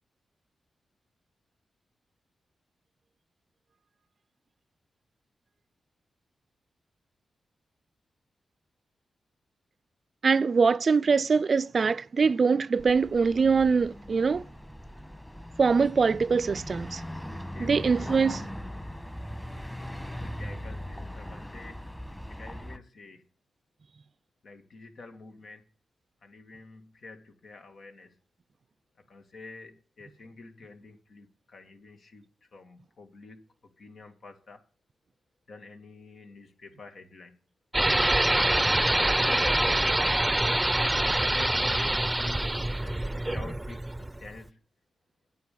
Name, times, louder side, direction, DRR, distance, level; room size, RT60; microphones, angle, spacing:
voice 1, 10.2-14.5 15.6-17.0 17.6-18.4, right 5 dB, 55° right, 0.5 m, -23 dB
sound 1, 12.8-22.8, equal, 10° left, 1.6 m, -40 dB
voice 2, 17.3-18.4 20.2-21.8 22.3-23.2 24.4-25.6 26.2-28.1 29.1-32.2 32.5-33.4 33.8-34.6 35.5-37.4 39.1-40.0 41.2-43.0 43.2-44.6, left 3 dB, 70° left, 2.3 m, -47 dB
sound 2, 37.7-44.4, right 1 dB, 15° right, 0.7 m, -25 dB
9.5 x 8.3 x 6.9 m
cardioid pair, 60°, 0 cm